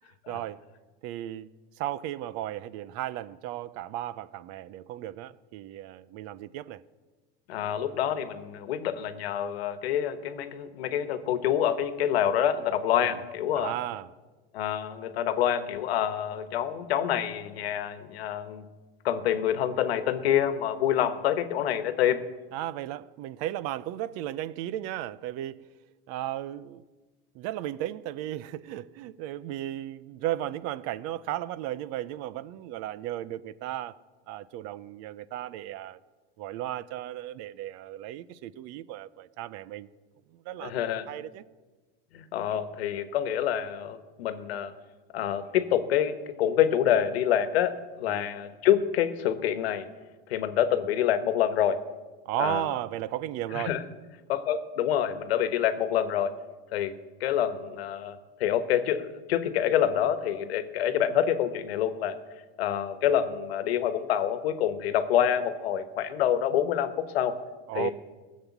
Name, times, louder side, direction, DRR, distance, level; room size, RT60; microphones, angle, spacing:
voice 1, 0.3-0.6 1.0-1.5 1.8-6.8 13.6-14.1 22.5-25.6 26.1-26.8 27.3-34.0 34.3-36.0 36.4-39.9 40.3-41.4 48.1-48.3 52.3-53.8 67.7-67.9, right 13 dB, 55° right, 0.6 m, -35 dB
voice 2, 7.5-13.7 14.5-18.6 19.0-22.2 40.6-41.0 42.1-44.7 45.1-49.9 50.3-51.8 52.4-52.6 53.5-53.8 54.3-56.3 56.7-56.9 57.2-62.1 62.6-67.4 67.7-67.9, left 10 dB, 90° left, 1.3 m, -27 dB
17.5 x 7.5 x 7.2 m
supercardioid pair, 120°, 30 cm